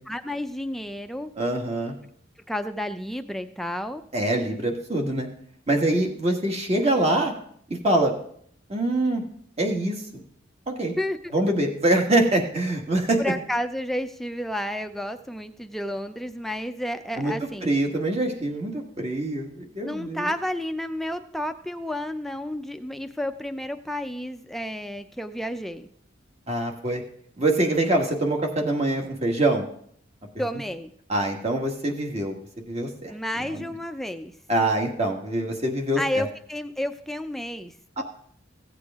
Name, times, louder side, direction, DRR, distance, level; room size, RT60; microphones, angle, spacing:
voice 1, 0.1-1.3 2.5-4.0 11.0-11.6 13.2-17.7 19.8-25.9 30.4-30.9 33.1-34.3 36.0-38.0, left 1 dB, ahead, 7 dB, 0.5 m, -31 dB
voice 2, 1.4-1.9 4.1-5.3 5.7-7.3 7.8-8.2 8.7-9.2 9.6-10.2 10.7-10.9 11.3-13.2 17.2-17.3 17.6-20.3 26.5-27.0 27.4-29.6 31.1-32.4 32.7-33.1 33.4-33.6 34.5-36.0 38.0-38.1, right 1 dB, 35° right, 2 dB, 1.6 m, -24 dB
16.0 x 8.0 x 3.6 m, 0.63 s
head